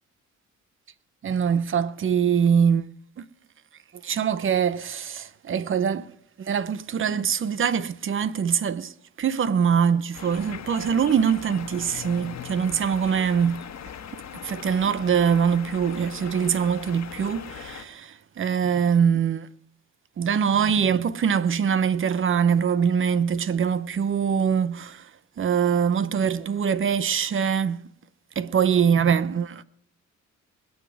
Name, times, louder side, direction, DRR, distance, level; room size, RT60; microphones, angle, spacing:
voice 1, 1.2-2.8 3.2-3.3 4.0-6.1 6.4-8.9 9.2-13.6 14.4-19.5 20.2-25.1 25.4-27.8 28.4-29.6, right 7 dB, 45° right, 0.7 m, -23 dB
sound 1, 10.1-17.8, left 8 dB, 65° left, 1.4 m, -40 dB
21.0 x 7.2 x 6.2 m
cardioid pair, 90°, 30 cm